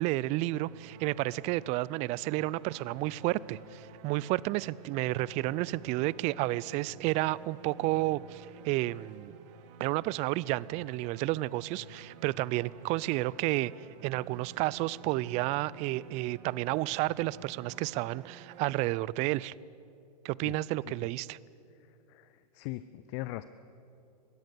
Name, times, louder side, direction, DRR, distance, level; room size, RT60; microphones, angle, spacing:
voice 1, 0.0-9.3 9.8-13.7 14.0-19.5 20.2-21.4, right 18 dB, 35° right, 22 dB, 0.5 m, -31 dB
sound 1, 0.6-19.6, right 7 dB, 50° right, 1.7 m, -52 dB
voice 2, 21.8-23.5, left 17 dB, 45° left, 14 dB, 0.7 m, -40 dB
22.0 x 17.0 x 8.3 m, 2.7 s
hypercardioid pair, 110°, 21 cm